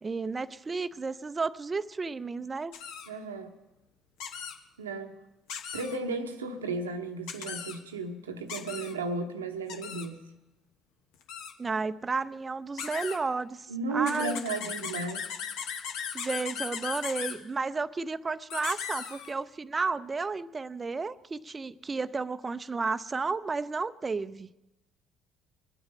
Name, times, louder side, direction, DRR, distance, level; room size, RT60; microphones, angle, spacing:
voice 1, 0.0-2.7 11.6-14.4 16.1-24.5, right 4 dB, 30° right, 0.5 m, -32 dB
sound 1, 2.7-3.1 4.2-4.6 5.5-6.0 7.3-7.8 8.5-8.9 9.7-10.1 11.2-11.5 12.8-13.2 14.1-17.4 18.5-19.3, left 7 dB, 70° left, 1.1 m, -37 dB
voice 2, 3.1-3.6 4.8-5.1 5.7-10.2 13.7-15.3, right 3 dB, 90° right, 0.9 m, -34 dB
23.0 x 8.8 x 5.4 m
hypercardioid pair, 55°, 0 cm